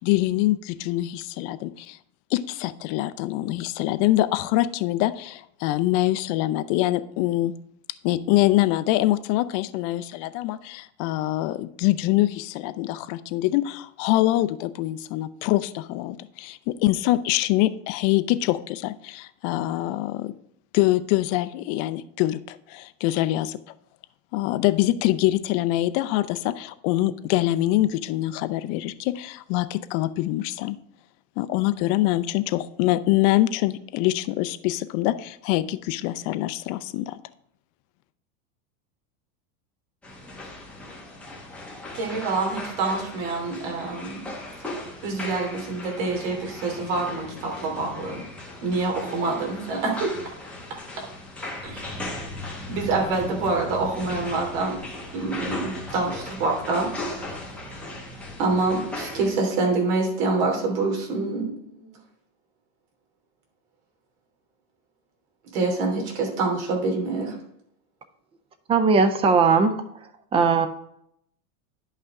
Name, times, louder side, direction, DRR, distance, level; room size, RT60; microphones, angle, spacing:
voice 1, 0.0-2.0 2.3-7.5 8.0-20.3 20.7-23.6 24.3-30.8 31.4-37.2, left 16 dB, 45° left, 13 dB, 0.5 m, -24 dB
sound 1, 40.0-59.3, left 2 dB, 5° left, 1.5 m, -37 dB
voice 2, 41.9-44.3 44.6-48.3 48.6-50.2 51.6-51.9 52.7-54.8 55.1-56.9 58.4-62.0 65.5-67.4, right 3 dB, 65° right, 1 dB, 3.1 m, -26 dB
voice 3, 68.7-69.7 70.3-70.7, right 5 dB, 15° right, 10 dB, 0.3 m, -18 dB
10.5 x 5.6 x 3.6 m, 0.74 s
supercardioid pair, 140°, 44 cm